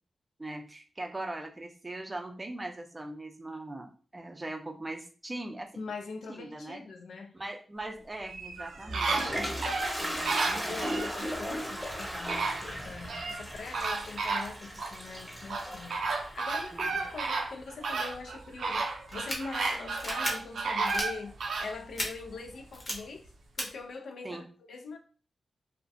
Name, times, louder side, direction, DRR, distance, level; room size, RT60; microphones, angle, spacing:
voice 1, 0.4-5.7 6.3-6.8 7.3-9.6 10.4-11.0 16.7-17.0 24.2-24.5, right 2 dB, 25° right, 0.4 m, -40 dB
voice 2, 5.8-7.3 10.0-23.3 23.6-25.0, left 4 dB, 80° left, 0.4 m, -43 dB
sound 1, 8.3-11.1 11.9-12.0 12.3-13.4 13.7-14.9 15.5-21.7 22.2-22.3, right 3 dB, 85° right, 0.4 m, -32 dB
Toilet flush, 8.6-17.5, equal, 5° left, 0.8 m, -37 dB
sound 2, 19.1-19.4 19.9-20.3 20.8-21.1 22.0-22.1 22.7-22.9 23.6-23.7, left 1 dB, 45° left, 0.8 m, -33 dB
2.3 x 2.1 x 2.6 m
cardioid pair, 80°, 0 cm